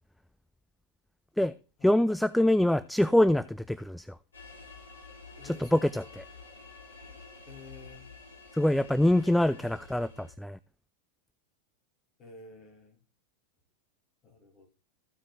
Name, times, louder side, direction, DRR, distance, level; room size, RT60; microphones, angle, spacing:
voice 1, 1.8-4.2 5.4-6.2 8.5-10.6, left 1 dB, ahead, 0.3 m, -25 dB
sound 1, 4.3-10.3, left 4 dB, 70° left, 3.8 m, -49 dB
voice 2, 5.4-5.9 7.5-8.1 9.5-10.2 12.2-13.0 14.2-14.7, left 3 dB, 30° left, 2.7 m, -51 dB
14.0 x 4.9 x 4.2 m
figure-of-eight pair, 90°, 0 cm